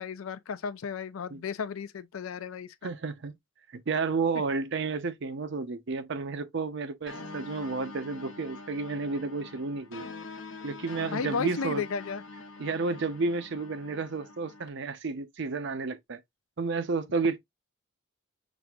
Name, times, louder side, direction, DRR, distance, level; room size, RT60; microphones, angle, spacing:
voice 1, 0.0-2.9 11.1-12.2, left 5 dB, 80° left, 0.5 m, -34 dB
voice 2, 2.8-3.4 3.7-10.1 10.6-11.8 12.6-16.2 16.6-17.4, right 4 dB, 60° right, 0.6 m, -31 dB
sound 1, 7.1-14.7, left 3 dB, 65° left, 0.8 m, -44 dB
6.1 x 2.5 x 2.3 m
head